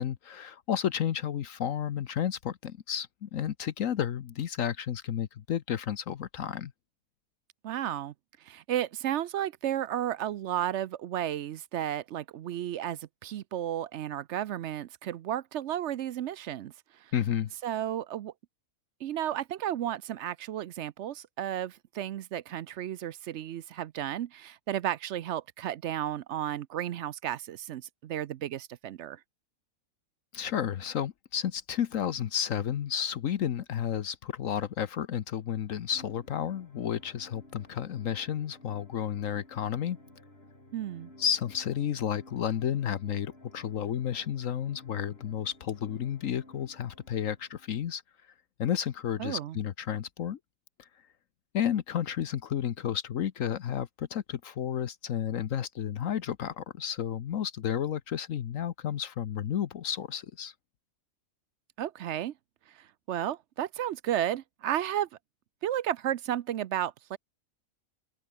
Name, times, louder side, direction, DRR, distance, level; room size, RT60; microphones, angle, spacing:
voice 1, 0.0-6.7 17.1-17.5 30.3-40.0 41.2-48.0 48.6-50.4 50.8-50.9 51.5-60.5, left 9 dB, 70° left, 1.3 m, -32 dB
voice 2, 7.6-8.1 8.4-16.7 17.0-17.1 17.6-18.3 19.0-29.2 40.7-41.1 49.2-49.6 61.8-62.3 62.8-65.1 65.6-67.2, right 11 dB, 65° right, 0.8 m, -33 dB
sound 1, 35.9-47.8, left 1 dB, 45° left, 7.2 m, -55 dB
omnidirectional pair, 1.4 m